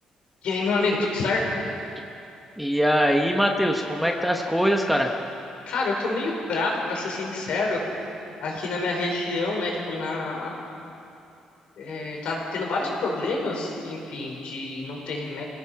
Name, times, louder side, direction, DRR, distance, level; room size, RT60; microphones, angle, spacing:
voice 1, 0.4-1.4 5.7-7.9 8.4-10.6 11.8-15.4, left 3 dB, 65° left, -1 dB, 5.0 m, -27 dB
voice 2, 2.6-5.2, equal, ahead, 2 dB, 1.0 m, -22 dB
28.0 x 17.0 x 5.8 m, 2.7 s
cardioid pair, 170°, 2 cm